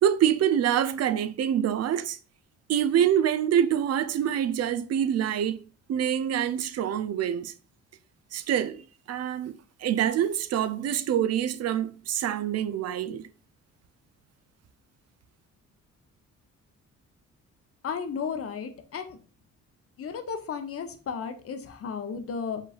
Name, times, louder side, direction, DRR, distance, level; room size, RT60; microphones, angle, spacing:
voice 1, 0.0-2.2 2.7-5.6 5.9-7.5 8.3-8.8 9.1-9.5 9.8-13.3, right 9 dB, 55° right, 0.4 m, -25 dB
voice 2, 17.8-19.2 20.0-22.6, left 6 dB, 50° left, 0.8 m, -34 dB
5.2 x 3.8 x 2.4 m
cardioid pair, 90°, 30 cm